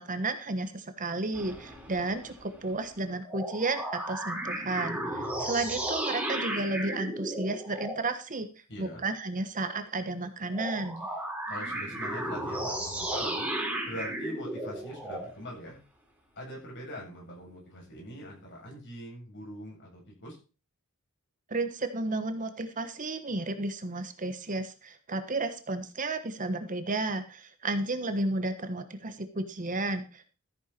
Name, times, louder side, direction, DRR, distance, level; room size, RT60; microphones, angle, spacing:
voice 1, 0.0-8.5 8.8-11.1 21.5-30.3, right 2 dB, 35° right, 9 dB, 1.3 m, -32 dB
sound 1, 1.3-3.0 3.2-8.1 10.5-15.3, right 1 dB, 5° right, 4.4 m, -34 dB
voice 2, 8.7-9.0 11.5-13.5 13.8-15.8 16.3-20.4, equal, 55° left, -2 dB, 7.8 m, -42 dB
14.0 x 9.2 x 4.4 m, 0.34 s
head